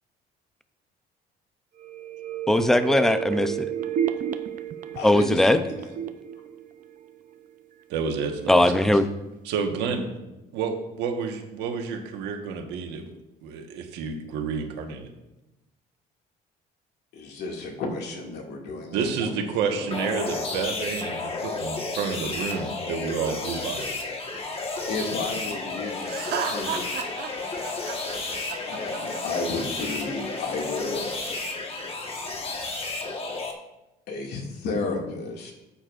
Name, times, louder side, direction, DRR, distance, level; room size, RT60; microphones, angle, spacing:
sound 1, 1.8-7.5 7.8-7.9, right 10 dB, 50° right, 0.6 m, -32 dB
voice 1, 2.5-3.7 5.0-5.6 8.5-9.1, left 1 dB, ahead, 10 dB, 0.6 m, -19 dB
voice 2, 5.0-6.0 17.1-19.4 19.7-19.9 24.9-27.0 28.7-31.1 34.1-35.5, left 3 dB, 75° left, 1 dB, 2.2 m, -32 dB
voice 3, 7.9-8.9 9.4-10.2 10.5-13.1 13.4-15.1 18.9-23.9, right 5 dB, 90° right, 4 dB, 1.4 m, -30 dB
sound 2, 19.9-33.5, left 3 dB, 35° left, 1.4 m, -32 dB
Laughter, 26.0-30.0, right 7 dB, 75° right, 1.3 m, -33 dB
14.0 x 8.8 x 2.5 m, 0.98 s
cardioid pair, 110°, 17 cm